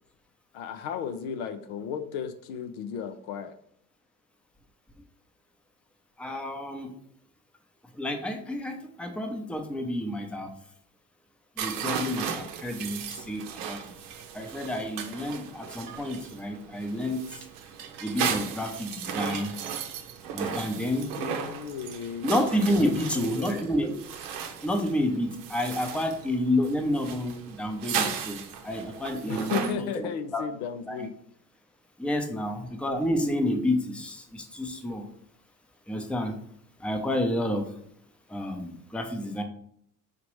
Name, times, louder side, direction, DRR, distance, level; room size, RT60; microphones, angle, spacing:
voice 1, 0.5-3.5 12.7-12.9 21.2-22.3 22.8-23.6 29.3-31.1, left 7 dB, 70° left, 9 dB, 0.6 m, -34 dB
voice 2, 6.2-6.9 8.0-10.5 11.6-13.0 13.3-13.8 14.3-17.3 18.0-19.5 20.3-21.1 22.2-23.9 24.6-30.4 30.9-31.1 32.0-35.0 35.9-36.3 36.8-37.6 38.3-39.4, left 1 dB, ahead, 4 dB, 0.6 m, -29 dB
sound 1, 11.6-29.8, right 7 dB, 60° right, 0.7 m, -36 dB
5.0 x 2.9 x 3.1 m, 0.68 s
hypercardioid pair, 65°, 48 cm